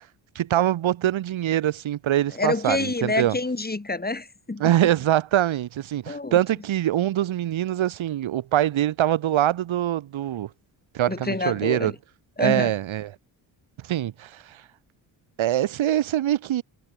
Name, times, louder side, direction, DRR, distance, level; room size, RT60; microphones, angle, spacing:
voice 1, 0.4-3.4 4.6-10.5 10.9-11.9 12.4-13.1 13.9-14.6 15.4-16.6, right 12 dB, 85° right, 7.5 m, -23 dB
voice 2, 2.3-4.6 6.1-6.4 11.1-11.9 12.4-12.7, left 2 dB, 20° left, 3.2 m, -27 dB
cardioid pair, 70°, 46 cm